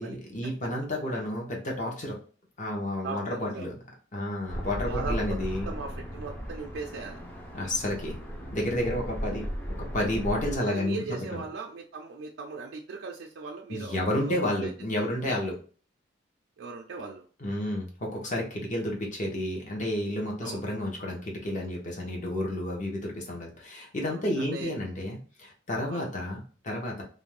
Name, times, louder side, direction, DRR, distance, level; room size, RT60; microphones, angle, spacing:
voice 1, 0.0-2.2 2.6-3.7 4.1-5.7 7.5-8.2 8.5-9.5 9.8-11.0 11.3-11.4 13.7-15.6 17.4-27.0, left 1 dB, 40° left, -1 dB, 0.8 m, -31 dB
voice 2, 3.0-3.7 4.9-5.4 5.7-7.2 10.6-15.1 16.6-17.2 20.4-20.6 24.1-24.7 25.9-26.1, right 4 dB, 65° right, 0 dB, 0.4 m, -39 dB
sound 1, 4.5-10.6, equal, 10° left, 0.4 m, -36 dB
2.5 x 2.1 x 3.1 m, 0.39 s
head